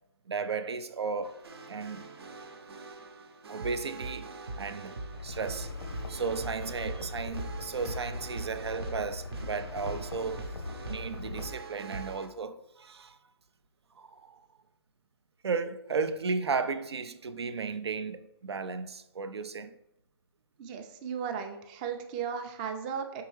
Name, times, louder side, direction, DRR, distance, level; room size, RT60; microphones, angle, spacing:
voice 1, 0.3-1.4 1.7-2.1 3.5-5.0 5.2-5.7 6.1-10.5 10.9-13.2 14.0-14.5 15.4-19.7, right 5 dB, 90° right, 0.4 m, -34 dB
sound 1, 1.2-12.3, right 2 dB, 70° right, 0.7 m, -42 dB
sound 2, 5.1-11.5, left 3 dB, 80° left, 0.6 m, -41 dB
voice 2, 20.6-23.2, right 7 dB, 20° right, 0.4 m, -36 dB
4.5 x 3.4 x 3.1 m
hypercardioid pair, 145°, 13 cm